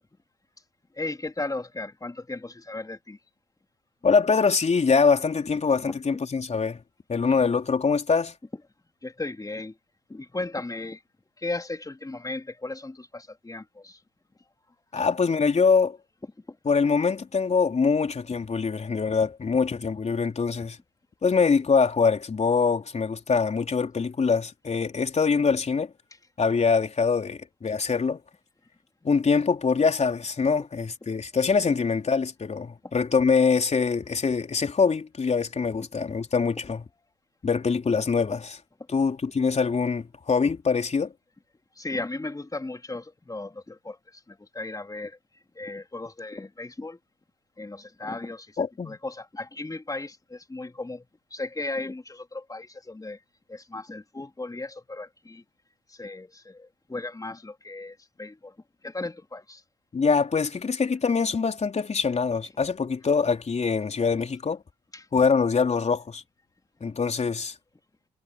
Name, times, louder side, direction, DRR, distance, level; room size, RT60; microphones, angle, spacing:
voice 1, 0.9-3.2 5.9-6.0 9.0-9.8 10.1-11.0 11.4-14.0 15.0-15.1 16.4-16.6 31.7-31.8 32.8-32.9 36.0-36.1 41.7-47.0 47.6-48.6 48.8-53.2 53.5-55.4 55.9-58.5 58.8-59.6 64.9-65.1, left 2 dB, 20° left, 3.3 m, -36 dB
voice 2, 4.0-6.8 7.1-8.3 14.9-16.0 16.7-20.8 21.2-25.9 26.4-28.2 29.0-36.8 37.4-38.6 38.9-41.1 48.6-49.0 59.9-64.6 65.1-66.2 66.8-67.6, left 5 dB, 40° left, 3.9 m, -24 dB
hypercardioid pair, 45°, 18 cm